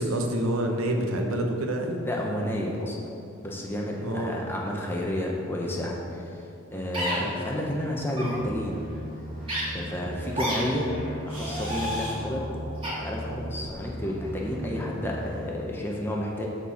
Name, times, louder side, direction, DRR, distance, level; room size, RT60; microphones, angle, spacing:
voice 1, 0.0-2.0 4.0-4.3, right 1 dB, 85° right, 3 dB, 1.0 m, -27 dB
voice 2, 2.0-3.0 3.4-8.8 9.7-10.9 11.3-12.4 12.9-16.5, left 1 dB, 10° left, -2 dB, 0.8 m, -31 dB
sound 1, 6.9-7.2 8.1-8.3 9.5-9.6 10.3-10.6 11.3-12.1 12.8-12.9, equal, 25° right, 1.8 m, -30 dB
sound 2, 8.2-13.7 14.0-15.4, equal, 45° right, 1.4 m, -37 dB
12.5 x 4.3 x 4.9 m, 2.7 s
head